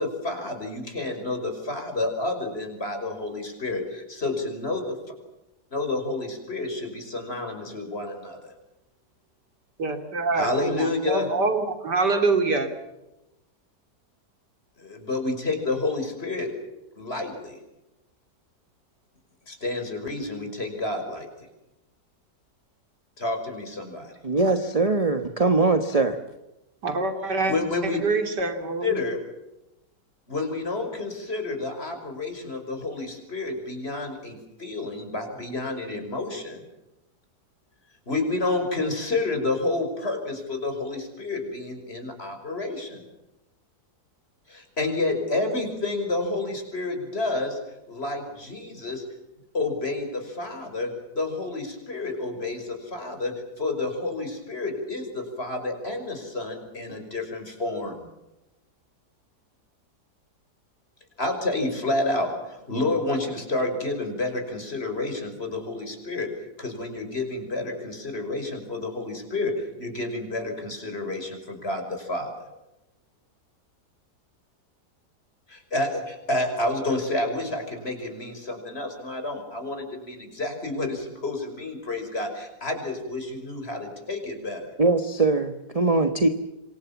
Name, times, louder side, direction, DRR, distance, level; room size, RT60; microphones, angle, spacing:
voice 1, 0.0-4.8 5.7-8.5 10.3-11.3 14.8-16.5 17.0-17.6 19.5-21.5 23.2-24.1 27.2-28.0 28.8-29.2 30.3-36.6 38.1-43.0 44.5-47.6 47.9-49.0 49.5-58.0 61.2-66.3 66.6-72.3 75.5-84.7, left 2 dB, 35° left, 5 dB, 5.8 m, -29 dB
voice 2, 9.8-12.7 26.8-27.5 28.0-29.0, right 3 dB, 75° right, 7 dB, 3.7 m, -25 dB
voice 3, 24.2-26.2 84.8-86.3, right 3 dB, 25° right, 8 dB, 1.3 m, -21 dB
27.5 x 23.5 x 7.3 m, 0.94 s
omnidirectional pair, 1.8 m